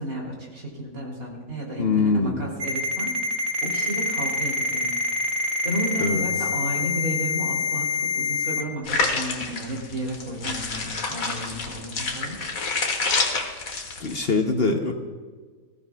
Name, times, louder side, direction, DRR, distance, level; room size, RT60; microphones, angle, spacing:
voice 1, 0.0-4.9 5.6-12.4, equal, 70° right, -2 dB, 3.6 m, -33 dB
voice 2, 1.8-2.5 6.0-6.2 14.0-14.9, left 4 dB, 50° left, 4 dB, 0.9 m, -23 dB
Ringtone, 2.6-8.6, left 3 dB, 50° right, 1.3 m, -26 dB
sound 1, 8.9-14.2, left 3 dB, 70° left, 1.8 m, -28 dB
20.0 x 15.0 x 2.3 m, 1.5 s
omnidirectional pair, 1.5 m